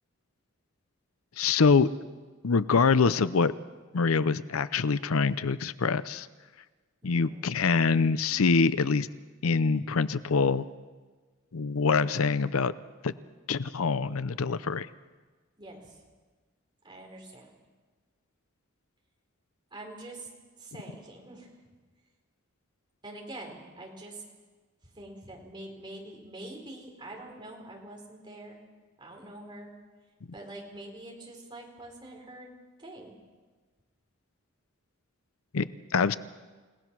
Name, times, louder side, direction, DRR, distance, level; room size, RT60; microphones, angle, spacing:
voice 1, 1.4-1.9 2.4-3.5 3.9-6.3 7.0-9.1 9.4-10.7 11.5-12.7 13.0-13.1 13.5-14.9 35.5-35.7 35.9-36.1, left 4 dB, 80° left, 15 dB, 0.6 m, -25 dB
voice 2, 7.0-7.7 15.6-15.9 16.8-17.5 19.7-20.3 20.6-21.5 23.0-24.2 25.0-28.6 29.0-29.7 30.3-32.5 32.8-33.2, right 1 dB, 20° right, 0 dB, 4.2 m, -45 dB
29.5 x 18.0 x 6.1 m, 1.4 s
head